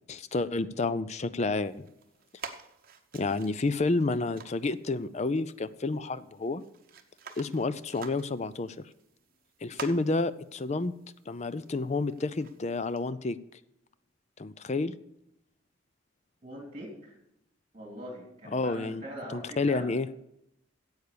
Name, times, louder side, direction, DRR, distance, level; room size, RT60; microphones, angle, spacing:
voice 1, 0.1-1.9 3.1-6.6 7.4-8.8 9.6-10.9 11.3-13.4 14.4-14.9 18.5-19.0 19.3-20.1, left 3 dB, 30° left, 15 dB, 0.4 m, -30 dB
sound 1, 1.5-13.1, right 5 dB, 45° right, 1.0 m, -50 dB
voice 2, 16.4-17.1 17.7-19.9, equal, 25° right, 1 dB, 3.1 m, -42 dB
10.0 x 8.1 x 6.8 m, 0.82 s
head